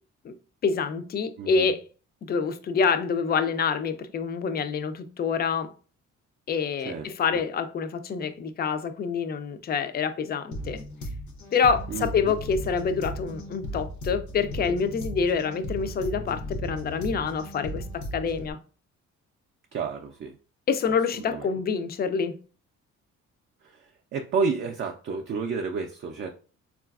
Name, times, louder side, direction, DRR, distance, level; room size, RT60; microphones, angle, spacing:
voice 1, 0.6-1.8 2.2-5.7 6.5-10.8 11.5-18.6 20.7-22.4, left 5 dB, 35° left, 0.4 m, -27 dB
voice 2, 1.4-1.7 6.8-7.4 11.9-12.4 19.7-20.4 21.3-21.5 23.6-26.3, right 5 dB, 40° right, 0.4 m, -31 dB
sound 1, 10.5-18.5, equal, 70° left, 0.7 m, -36 dB
3.8 x 2.4 x 2.3 m
cardioid pair, 90°, 30 cm